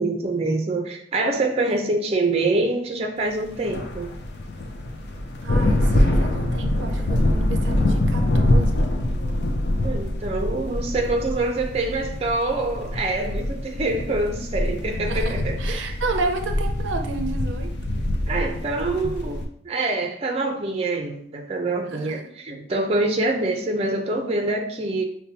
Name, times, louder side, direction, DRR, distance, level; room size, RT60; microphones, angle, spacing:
voice 1, 0.0-4.1 9.8-15.9 18.3-25.0, right 2 dB, 35° right, 3 dB, 0.5 m, -25 dB
sound 1, 3.4-19.5, left 1 dB, 60° left, 0.5 m, -24 dB
voice 2, 5.4-8.9 15.1-17.7 21.9-22.1, right 3 dB, 90° right, 5 dB, 0.4 m, -31 dB
5.4 x 2.2 x 2.8 m, 0.67 s
head